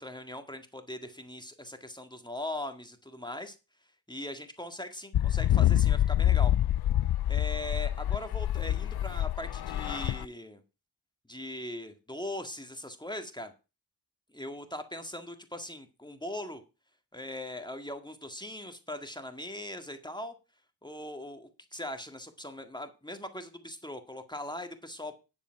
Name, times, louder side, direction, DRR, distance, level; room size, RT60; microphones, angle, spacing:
voice 1, 0.0-3.6 4.1-6.5 7.3-10.6 11.3-13.5 14.3-16.6 17.1-20.3 20.8-25.2, left 1 dB, 10° left, 6 dB, 1.8 m, -40 dB
sound 1, 5.1-10.3, left 12 dB, 60° left, 0.5 m, -26 dB
10.0 x 7.2 x 5.8 m, 0.31 s
cardioid pair, 50°, 43 cm